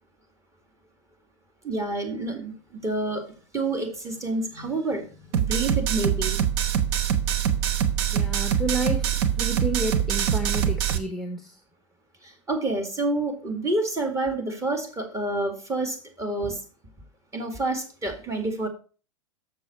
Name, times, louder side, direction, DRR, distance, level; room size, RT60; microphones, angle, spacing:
voice 1, 1.6-3.2 3.5-6.4 12.2-16.6 17.3-18.7, right 2 dB, 20° right, 4 dB, 2.0 m, -28 dB
sound 1, 5.3-11.0, right 9 dB, 50° right, 0.9 m, -24 dB
voice 2, 8.1-9.1 9.4-11.6, right 2 dB, ahead, 5 dB, 0.9 m, -30 dB
6.9 x 6.7 x 4.3 m, 0.36 s
hypercardioid pair, 105°, 16 cm